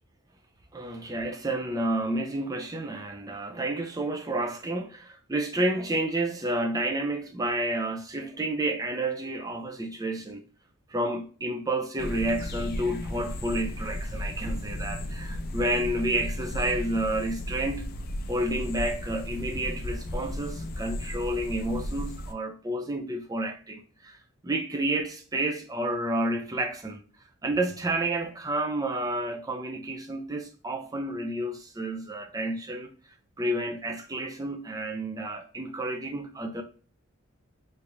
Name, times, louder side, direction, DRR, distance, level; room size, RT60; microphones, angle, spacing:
voice 1, 0.7-10.4 10.9-17.9 18.3-24.2 24.4-27.0 27.4-32.9 33.4-36.6, right 1 dB, 15° right, 0.4 m, -30 dB
sound 1, 12.0-22.3, left 1 dB, 45° left, 0.5 m, -34 dB
3.4 x 3.2 x 2.6 m
head